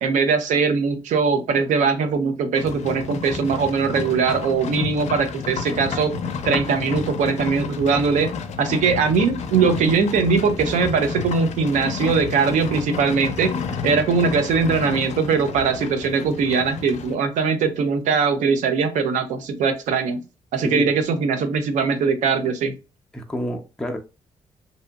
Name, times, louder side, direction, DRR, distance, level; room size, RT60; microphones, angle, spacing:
voice 1, 0.0-6.2 6.4-8.3 8.6-20.2 20.5-22.7, right 5 dB, 90° right, 0.6 m, -21 dB
Livestock farm animals working animals, 2.6-17.1, left 5 dB, 65° left, 0.5 m, -31 dB
voice 2, 20.6-21.0 23.1-24.0, equal, 5° left, 0.5 m, -28 dB
2.7 x 2.6 x 2.3 m
cardioid pair, 90°, 12 cm